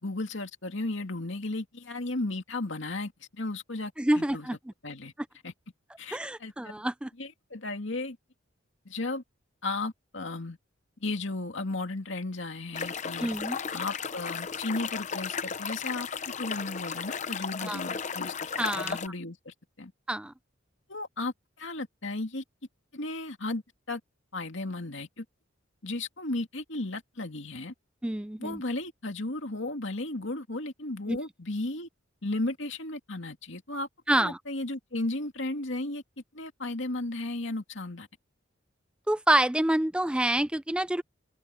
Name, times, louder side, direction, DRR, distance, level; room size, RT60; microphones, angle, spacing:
voice 1, 0.0-4.5 4.8-5.1 5.4-5.5 6.0-6.7 7.2-8.2 8.9-9.2 9.6-10.6 11.0-13.3 13.7-16.1 16.4-18.5 18.7-19.9 20.9-22.4 22.9-23.6 23.9-24.0 24.3-25.2 25.8-27.7 28.4-31.9 32.2-36.0 36.3-38.1, left 2 dB, 65° left, 2.4 m, -35 dB
voice 2, 4.0-4.6 6.1-7.1 13.2-13.6 17.6-17.8 18.6-19.0 20.1-20.3 28.0-28.6 31.1-31.2 34.1-34.4 39.1-41.0, right 1 dB, 5° right, 0.3 m, -27 dB
sound 1, 12.7-19.1, left 6 dB, 35° left, 0.7 m, -34 dB
open air
head